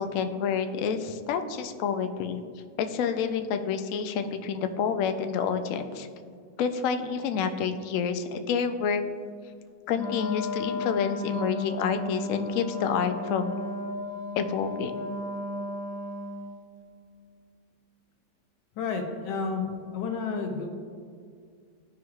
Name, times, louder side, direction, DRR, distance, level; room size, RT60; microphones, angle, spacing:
voice 1, 0.0-2.4 2.8-6.1 6.6-9.0 9.9-13.5 14.3-15.1, left 6 dB, 70° left, 8 dB, 0.7 m, -28 dB
Wind instrument woodwind instrument, 9.9-16.6, left 2 dB, 5° left, 0.6 m, -34 dB
voice 2, 18.8-20.7, left 4 dB, 90° left, 3 dB, 1.4 m, -31 dB
13.0 x 4.7 x 2.3 m, 2.1 s
omnidirectional pair, 1.8 m